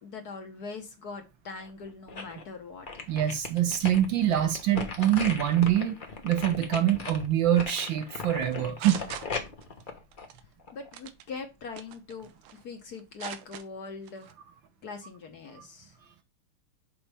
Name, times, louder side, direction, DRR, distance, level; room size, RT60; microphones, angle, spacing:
voice 1, 0.0-3.1 10.7-14.3 14.8-16.0, left 4 dB, 55° left, 1.3 m, -42 dB
sound 1, 1.6-2.4 2.9-10.9 11.4-11.5, left 4 dB, 40° left, 0.7 m, -38 dB
voice 2, 3.1-6.0 6.2-9.0 15.6-15.7, right 11 dB, 70° right, 1.7 m, -25 dB
sound 2, 8.4-9.8 10.1-10.4 10.9-11.2 11.8-12.6 12.9-13.6 14.1-14.3, right 11 dB, 85° right, 1.6 m, -41 dB
7.1 x 4.9 x 3.4 m
omnidirectional pair, 2.3 m